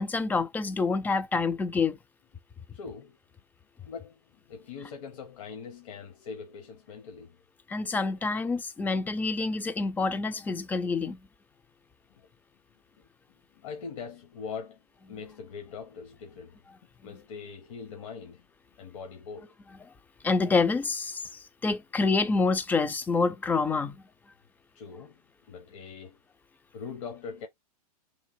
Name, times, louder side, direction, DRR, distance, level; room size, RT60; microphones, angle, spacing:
voice 1, 0.0-2.0 7.7-11.3 20.2-24.0, left 4 dB, 10° left, 0.4 m, -27 dB
voice 2, 2.7-3.2 3.8-7.4 12.1-12.3 12.7-14.8 15.1-16.6 17.0-18.5 18.8-19.5 24.7-25.2 25.5-26.2 26.7-27.5, left 5 dB, 55° left, 0.9 m, -42 dB
3.2 x 2.6 x 4.0 m
figure-of-eight pair, 100°, 20 cm